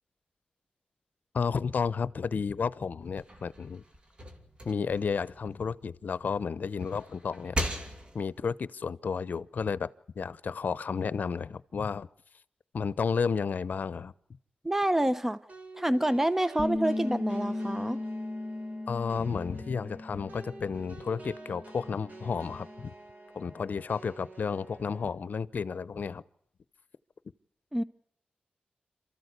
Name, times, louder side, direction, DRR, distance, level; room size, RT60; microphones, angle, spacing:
voice 1, 1.3-3.8 4.6-7.6 8.1-9.9 10.2-12.1 12.7-14.1 18.9-22.9 23.3-26.2, left 5 dB, 60° left, 18 dB, 0.8 m, -32 dB
sound 1, 3.0-6.2 6.6-8.4, equal, 30° right, 2.9 m, -38 dB
voice 2, 14.6-15.4 15.8-18.0 27.7-27.8, right 1 dB, 10° right, 14 dB, 0.8 m, -27 dB
sound 2, 15.5-25.1, right 3 dB, 55° right, 3.5 m, -49 dB
Bass guitar, 16.6-20.9 21.2-22.8, left 2 dB, 30° left, 1.6 m, -37 dB
27.5 x 14.0 x 8.2 m, 0.71 s
wide cardioid pair, 90°, 3 cm